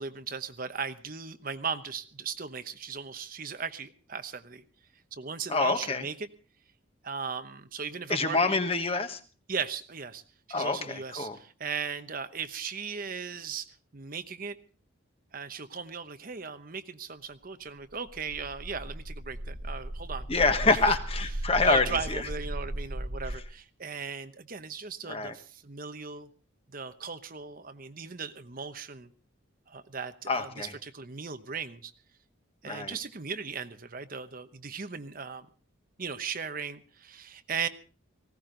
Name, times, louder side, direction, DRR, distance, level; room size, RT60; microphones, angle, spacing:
voice 1, 0.0-4.6 5.1-6.3 7.0-8.6 9.5-10.2 10.5-13.7 13.9-14.6 15.3-20.3 20.6-20.9 21.6-26.3 26.7-29.1 29.7-31.9 32.6-35.5 36.0-37.7, right 5 dB, 45° right, 9 dB, 0.9 m, -37 dB
voice 2, 5.5-6.0 8.1-9.2 10.5-11.4 20.3-22.2 25.1-25.3 30.3-30.7 32.6-32.9, left 3 dB, 30° left, 8 dB, 1.4 m, -26 dB
sound 1, 17.9-23.4, right 1 dB, 80° right, 2.3 m, -36 dB
19.5 x 16.5 x 3.9 m, 0.37 s
head